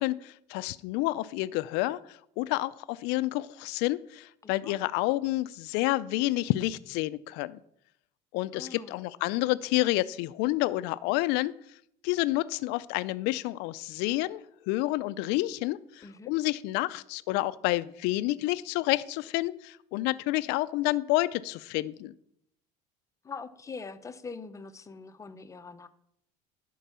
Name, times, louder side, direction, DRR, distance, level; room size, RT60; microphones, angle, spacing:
voice 1, 0.0-7.6 8.3-11.5 12.0-22.1, left 18 dB, 75° left, 16 dB, 0.5 m, -29 dB
voice 2, 4.4-4.8 8.5-9.0 16.0-16.3 23.2-25.9, left 4 dB, 20° left, 11 dB, 0.7 m, -43 dB
11.5 x 4.6 x 6.8 m, 0.72 s
cardioid pair, 135°, 18 cm